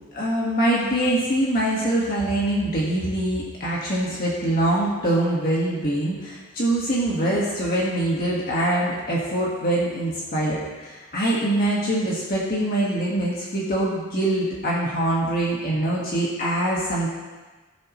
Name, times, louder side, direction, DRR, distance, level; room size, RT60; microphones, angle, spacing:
voice 1, 0.1-17.1, right 1 dB, 40° left, -5 dB, 1.7 m, -24 dB
18.0 x 7.2 x 3.2 m, 1.3 s
head